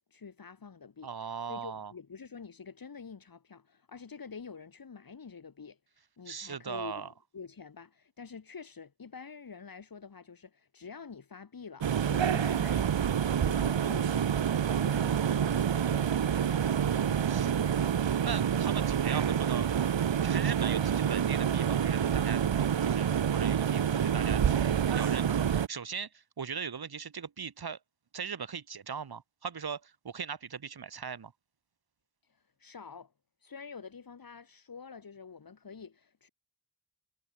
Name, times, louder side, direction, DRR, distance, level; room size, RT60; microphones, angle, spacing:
voice 1, 0.0-12.9 13.3-17.8 32.2-33.1 33.4-36.3, left 5 dB, 50° left, 6.7 m, -48 dB
voice 2, 1.0-1.9 6.3-7.1 17.3-17.5 18.0-19.7 20.2-22.4 22.8-24.4 24.9-27.8 28.1-31.3, right 6 dB, 55° right, 4.5 m, -39 dB
sound 1, 11.8-25.7, right 8 dB, 90° right, 3.2 m, -27 dB
wide cardioid pair, 125°, 44 cm